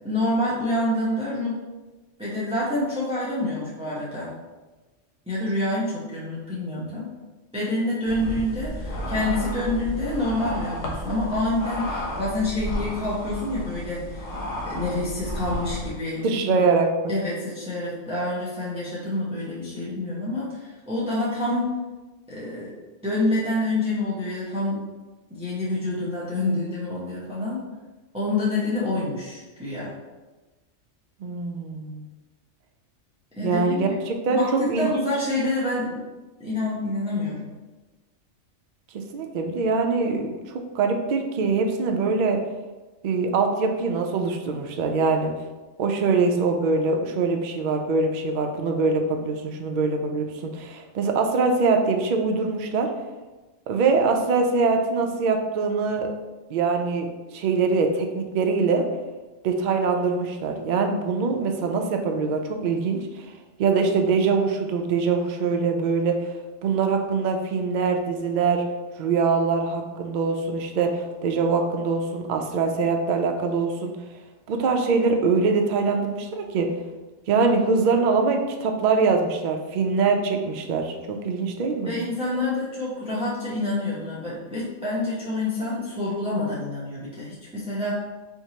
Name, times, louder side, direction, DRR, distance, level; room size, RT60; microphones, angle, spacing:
voice 1, 0.0-1.6 2.2-4.3 5.3-7.1 7.5-14.3 14.6-16.6 17.1-21.7 22.3-22.8 23.0-24.9 25.3-27.7 28.1-30.0 33.4-34.0 34.3-36.0 36.4-37.5 81.8-87.9, left 2 dB, 5° right, -8 dB, 0.6 m, -27 dB
sound 1, 8.1-15.9, equal, 85° left, 1.1 m, -32 dB
voice 2, 16.2-16.9 31.2-32.1 33.4-34.9 38.9-42.4 43.0-45.3 45.8-52.9 53.7-56.1 56.5-58.9 59.4-63.3 63.6-66.3 66.6-68.6 69.0-73.9 74.5-76.7 77.3-81.9, right 4 dB, 70° right, 4 dB, 0.4 m, -23 dB
4.5 x 2.8 x 2.8 m, 1.2 s
omnidirectional pair, 1.3 m